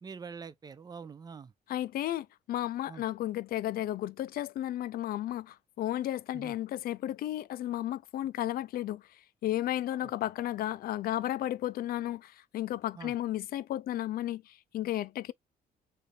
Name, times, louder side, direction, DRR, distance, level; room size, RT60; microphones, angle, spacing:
voice 1, 0.0-1.5 2.9-3.0 6.3-6.6 10.0-10.1 13.0-13.1, right 5 dB, 25° right, 0.4 m, -45 dB
voice 2, 1.7-9.0 9.4-15.3, left 13 dB, 60° left, 0.4 m, -33 dB
3.3 x 2.6 x 4.1 m
cardioid pair, 100°, 17 cm